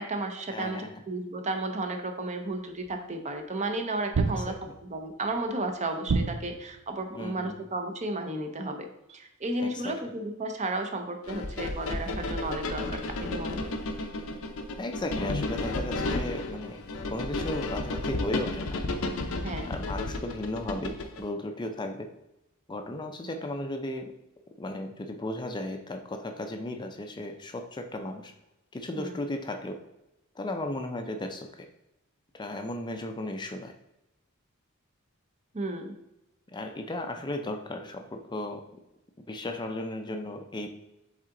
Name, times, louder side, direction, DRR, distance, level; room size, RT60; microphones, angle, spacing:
voice 1, 0.0-13.8 19.4-19.7 28.9-29.2 35.5-35.9, right 2 dB, 35° right, 5 dB, 0.7 m, -33 dB
voice 2, 0.5-0.9 4.5-4.6 7.2-7.5 9.6-10.0 14.8-16.8 17.1-19.0 19.7-22.1 22.7-24.1 24.6-28.3 28.7-29.8 30.4-31.5 32.3-33.7 36.5-38.6 39.3-40.7, left 1 dB, 20° left, 5 dB, 0.5 m, -35 dB
sound 1, 2.9-3.0 4.1-4.9 6.1-6.8, right 4 dB, 80° right, 0.5 m, -28 dB
sound 2, 11.3-21.2, left 2 dB, 70° left, 0.7 m, -33 dB
7.5 x 3.7 x 3.7 m, 0.88 s
head